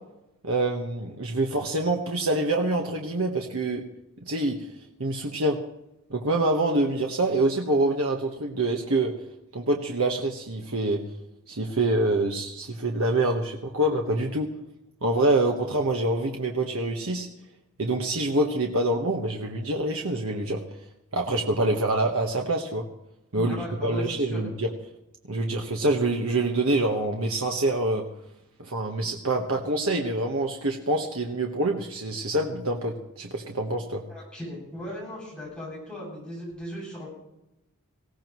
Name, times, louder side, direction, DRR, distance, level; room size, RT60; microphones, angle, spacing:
voice 1, 0.4-3.8 4.3-4.7 5.0-5.6 6.1-9.1 9.5-11.0 11.5-14.5 15.0-17.3 17.8-20.6 21.1-22.8 23.3-23.5 23.8-24.7 25.3-28.0 28.6-34.0, right 2 dB, 75° right, 2 dB, 1.3 m, -26 dB
voice 2, 23.4-24.5 34.1-37.1, equal, 5° left, -5 dB, 7.5 m, -37 dB
19.0 x 16.5 x 3.1 m, 0.88 s
head